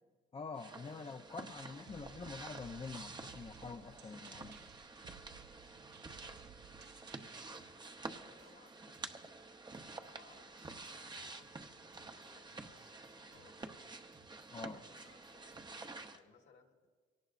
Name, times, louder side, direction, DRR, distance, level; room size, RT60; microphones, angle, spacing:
voice 1, 0.3-4.6 14.5-14.8, left 4 dB, 25° left, 5 dB, 0.6 m, -46 dB
sound 1, 0.5-16.2, right 3 dB, 20° right, 0.8 m, -50 dB
sound 2, 1.9-7.5, right 8 dB, 60° right, 0.6 m, -58 dB
sound 3, 7.5-9.4 9.7-11.5 11.9-13.7 14.1-15.9, right 3 dB, 80° right, 2.3 m, -69 dB
voice 2, 8.1-9.0 9.9-11.5 12.1-13.6 14.6-16.9, left 5 dB, 65° left, 2 dB, 2.0 m, -66 dB
23.0 x 18.0 x 2.5 m, 1.5 s
cardioid pair, 90°, 20 cm